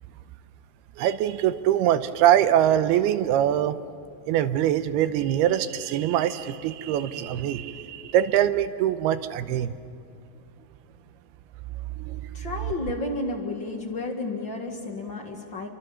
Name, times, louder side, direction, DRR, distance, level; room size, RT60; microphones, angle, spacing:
voice 1, 1.0-3.8 4.3-9.7 12.0-12.2, right 11 dB, 85° right, 12 dB, 2.8 m, -23 dB
voice 2, 12.3-15.7, left 2 dB, 40° left, 2 dB, 1.9 m, -32 dB
29.5 x 24.5 x 7.1 m, 2.4 s
omnidirectional pair, 4.5 m